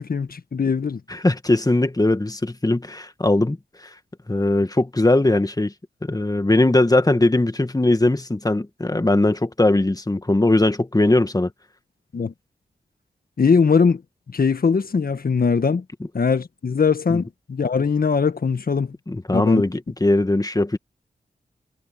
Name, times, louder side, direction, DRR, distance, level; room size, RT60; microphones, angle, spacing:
voice 1, 0.0-1.0 12.1-12.3 13.4-14.0 14.3-15.8 16.1-18.9 19.3-19.6, left 5 dB, 60° left, 1.6 m, -21 dB
voice 2, 1.1-3.6 4.3-5.7 6.0-11.5 17.1-17.2 19.1-20.8, left 2 dB, 20° left, 1.9 m, -20 dB
cardioid pair, 40°, 17 cm